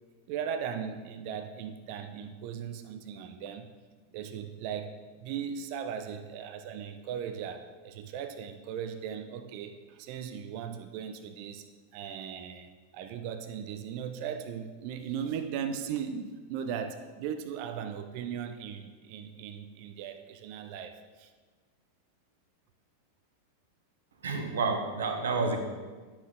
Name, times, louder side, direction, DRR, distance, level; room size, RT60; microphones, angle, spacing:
voice 1, 0.3-3.7 4.1-11.6 11.9-21.3, right 8 dB, 45° right, 9 dB, 0.6 m, -38 dB
voice 2, 24.2-25.6, right 4 dB, 65° right, 5 dB, 1.2 m, -29 dB
11.0 x 7.2 x 3.7 m, 1.4 s
figure-of-eight pair, 90°, 0 cm